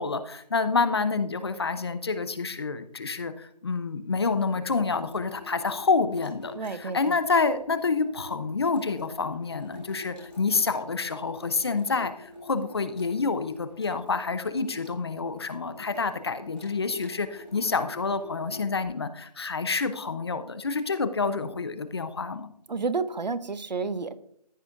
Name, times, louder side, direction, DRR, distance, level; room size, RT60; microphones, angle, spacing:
voice 1, 0.0-22.5, left 4 dB, 40° left, 12 dB, 0.6 m, -28 dB
Water tap faucet / Sink (filling or washing), 4.6-18.9, left 1 dB, 5° left, 2.8 m, -47 dB
voice 2, 6.6-7.1 22.7-24.2, right 4 dB, 85° right, 14 dB, 0.8 m, -30 dB
14.5 x 6.2 x 2.5 m, 0.68 s
figure-of-eight pair, 165°, 21 cm